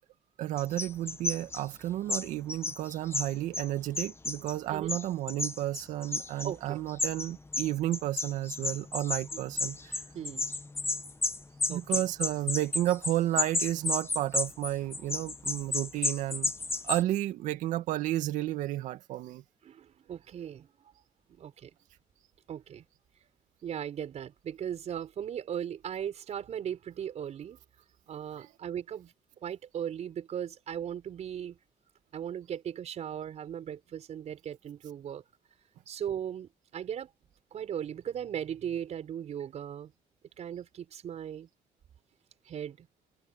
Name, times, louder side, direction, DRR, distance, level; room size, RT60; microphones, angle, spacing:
voice 1, 0.4-10.0 11.7-16.5 16.8-19.4 28.4-28.5, right 14 dB, 85° right, 2.2 m, -32 dB
sound 1, 0.6-1.6 2.1-3.7 3.9-4.5 4.9-6.5 6.9-17.0, left 3 dB, 20° left, 1.5 m, -32 dB
voice 2, 6.4-6.8 10.1-10.5 11.7-12.1 19.6-20.9 21.3-21.7 22.5-22.8 23.6-27.6 28.1-29.1 29.4-31.6 32.1-35.2 35.9-37.1 37.5-39.9 40.4-41.5 42.5-42.9, right 9 dB, 60° right, 6.1 m, -38 dB
cardioid pair, 85°, 13 cm